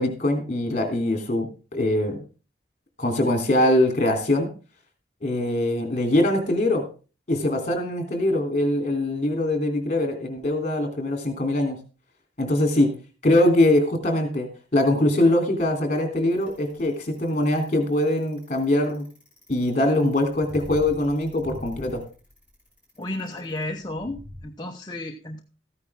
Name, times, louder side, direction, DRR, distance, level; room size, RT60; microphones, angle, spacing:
voice 1, 0.0-1.5 1.7-2.2 3.0-4.5 5.2-6.8 7.3-11.8 12.4-12.9 13.2-19.1 19.5-22.0, left 1 dB, 40° left, 4 dB, 3.2 m, -22 dB
Bicycle, 16.3-24.4, left 1 dB, 5° right, 5.7 m, -44 dB
voice 2, 23.0-25.4, left 1 dB, 25° left, 2 dB, 0.9 m, -33 dB
14.5 x 9.8 x 3.6 m, 0.35 s
head